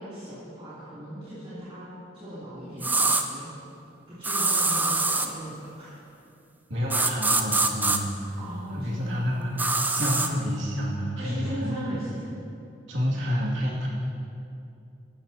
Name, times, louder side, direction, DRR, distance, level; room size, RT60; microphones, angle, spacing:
voice 1, 0.0-3.5 4.1-6.0 8.4-9.3 11.2-12.4, equal, 30° right, -14 dB, 3.0 m, -38 dB
sound 1, 2.8-3.2 4.2-5.3 6.9-8.0 9.6-10.3, right 3 dB, 10° right, 0.5 m, -24 dB
voice 2, 6.7-8.1 8.7-11.8 12.9-13.9, equal, 80° right, -5 dB, 2.2 m, -29 dB
15.5 x 12.0 x 2.8 m, 2.6 s
head